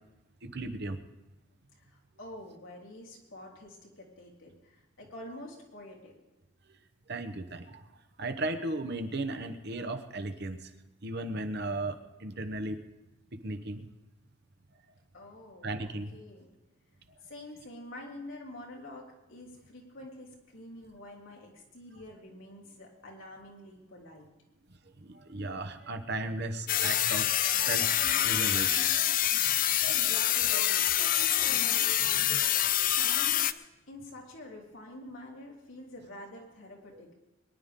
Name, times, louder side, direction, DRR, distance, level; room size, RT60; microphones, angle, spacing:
voice 1, 0.4-1.0 7.1-7.8 8.2-10.7 11.0-12.8 13.3-13.9 15.6-16.1 25.0-28.9 36.9-37.0, right 2 dB, 50° right, 8 dB, 1.1 m, -36 dB
voice 2, 1.7-6.1 15.1-16.5 17.2-24.3 29.9-33.6 33.9-37.1, left 1 dB, 65° left, -3 dB, 3.8 m, -47 dB
sound 1, 26.7-33.5, left 11 dB, 40° left, 0.5 m, -26 dB
22.5 x 11.0 x 3.7 m, 1.0 s
head